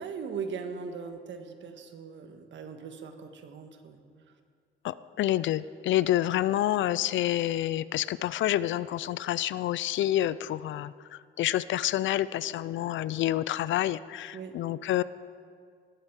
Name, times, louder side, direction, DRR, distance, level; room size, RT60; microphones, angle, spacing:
voice 1, 0.0-4.0 14.3-14.6, right 5 dB, 70° right, 6 dB, 1.6 m, -39 dB
voice 2, 4.8-10.9 11.4-15.0, left 13 dB, 70° left, 17 dB, 0.5 m, -28 dB
18.5 x 8.0 x 7.4 m, 2.1 s
cardioid pair, 90°, 20 cm